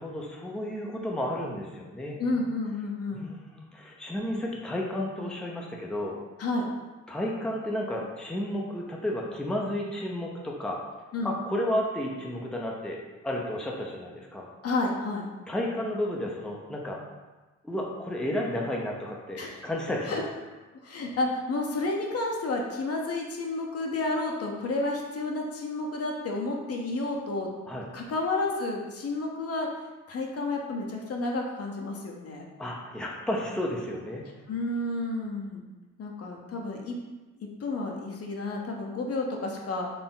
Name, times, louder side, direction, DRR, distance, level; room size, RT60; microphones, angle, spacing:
voice 1, 0.0-2.2 3.1-6.2 7.1-10.8 11.2-14.5 15.5-17.0 17.6-20.2 27.7-27.9 32.6-34.2, left 1 dB, ahead, -2 dB, 0.7 m, -32 dB
voice 2, 2.2-3.3 6.4-6.7 11.1-11.4 14.6-15.3 19.4-19.6 20.1-20.2 20.8-27.6 27.9-29.7 30.1-32.5 34.5-35.6 36.0-37.0 37.6-39.9, left 2 dB, 50° left, 0 dB, 0.9 m, -31 dB
4.2 x 3.3 x 3.8 m, 1.2 s
cardioid pair, 90°, 30 cm